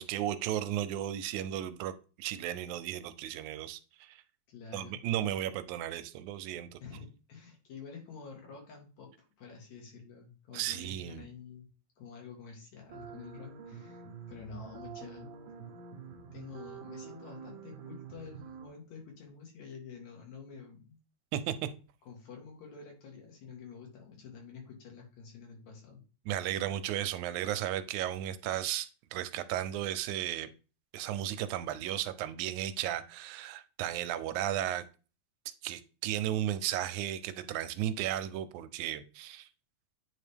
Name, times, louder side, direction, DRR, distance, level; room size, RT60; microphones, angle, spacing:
voice 1, 0.0-4.2 4.7-6.8 10.5-11.3 21.3-21.7 26.3-30.5 30.9-34.8 35.6-39.5, right 12 dB, 85° right, 2.0 m, -34 dB
voice 2, 4.5-5.0 6.8-9.1 9.4-11.7 12.0-15.3 16.3-21.0 22.1-26.0, left 6 dB, 70° left, 3.1 m, -49 dB
sound 1, 12.9-18.7, right 7 dB, 70° right, 1.2 m, -47 dB
9.0 x 3.6 x 3.4 m
omnidirectional pair, 3.4 m